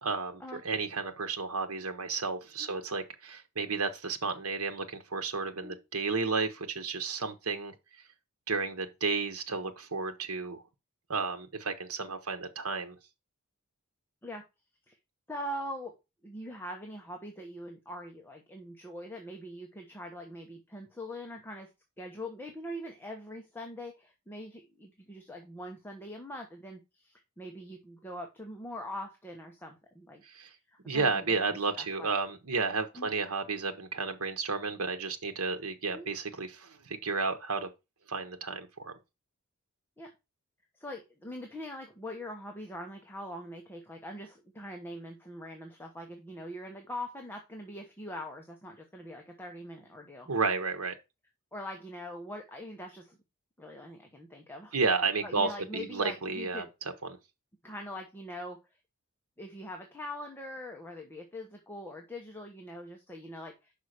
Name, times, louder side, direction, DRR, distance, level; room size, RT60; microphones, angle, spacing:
voice 1, 0.0-7.7 8.5-10.6 11.1-13.0 30.3-30.5 30.9-37.7 38.1-38.9 50.3-51.0 54.7-56.6, right 4 dB, 70° right, 1.1 m, -32 dB
voice 2, 15.3-16.0 16.2-21.7 22.0-30.2 30.7-31.4 31.8-32.1 32.9-33.2 35.9-36.1 40.0-40.1 40.7-50.3 51.5-53.2 53.6-54.8 55.2-56.7 57.6-58.6 59.4-63.7, left 1 dB, 10° left, 1.0 m, -42 dB
5.7 x 5.0 x 6.5 m
head